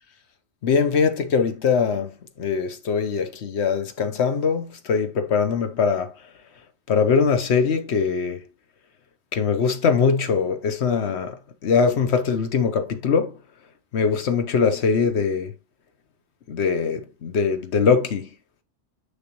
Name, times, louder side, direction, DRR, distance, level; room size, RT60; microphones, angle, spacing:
voice 1, 0.6-2.1 2.4-6.1 6.9-8.4 9.3-11.4 11.6-13.4 13.9-15.5 16.5-18.3, left 5 dB, 65° left, 1.2 m, -22 dB
6.6 x 5.8 x 3.0 m
omnidirectional pair, 1.2 m